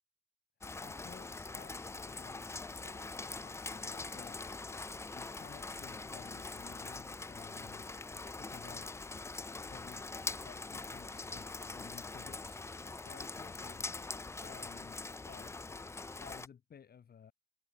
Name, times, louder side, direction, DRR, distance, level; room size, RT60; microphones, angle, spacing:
Rain, 0.6-16.5, left 3 dB, 15° left, 0.4 m, -43 dB
voice 1, 0.8-4.4 5.1-7.9 8.3-8.9 9.6-13.9 14.4-15.6 16.2-17.3, left 7 dB, 50° left, 5.0 m, -55 dB
cardioid pair, 90°, 20 cm